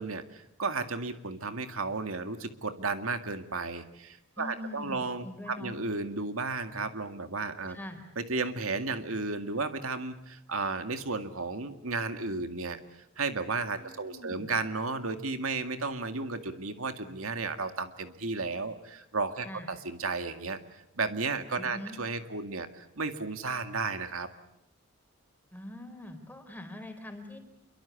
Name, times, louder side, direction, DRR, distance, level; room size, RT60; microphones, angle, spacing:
voice 1, 0.0-7.8 8.2-12.8 13.2-24.3, right 3 dB, 90° right, 8 dB, 2.1 m, -33 dB
voice 2, 4.4-5.8 7.7-8.0 13.7-14.5 19.4-19.7 21.6-22.0 25.5-27.4, left 1 dB, 10° left, 6 dB, 4.4 m, -43 dB
28.5 x 23.5 x 8.4 m, 0.81 s
head